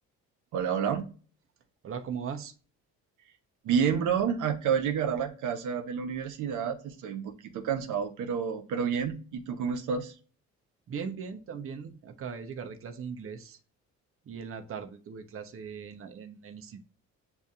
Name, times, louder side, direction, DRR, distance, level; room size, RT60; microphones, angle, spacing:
voice 1, 0.5-1.1 3.6-10.1, right 7 dB, 80° right, 5 dB, 0.8 m, -29 dB
voice 2, 1.8-2.5 10.9-13.6 14.2-16.8, right 6 dB, 45° right, 6 dB, 0.8 m, -39 dB
8.0 x 2.7 x 2.4 m, 0.37 s
cardioid pair, 90°, 30 cm